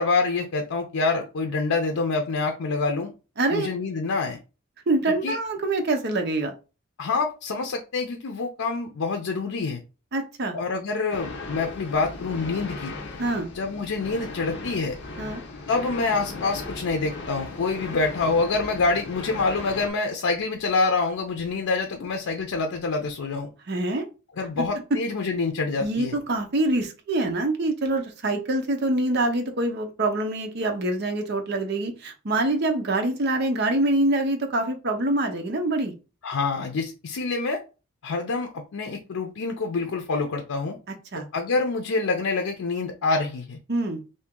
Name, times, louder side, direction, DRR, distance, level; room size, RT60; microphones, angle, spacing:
voice 1, 0.0-3.1 3.5-4.4 5.1-5.4 7.0-9.8 10.5-12.9 13.5-14.9 15.7-23.5 24.4-26.2 36.2-37.6 38.0-40.8 41.3-43.6, left 3 dB, 90° left, 3 dB, 0.5 m, -26 dB
voice 2, 3.4-3.7 4.9-6.5 10.1-10.6 13.2-13.5 15.2-15.4 23.7-24.0 25.8-35.9 41.1-41.3 43.7-44.0, right 2 dB, 55° right, 4 dB, 0.7 m, -25 dB
sound 1, 11.1-19.9, left 3 dB, 55° left, 0.8 m, -37 dB
2.7 x 2.7 x 3.6 m, 0.32 s
head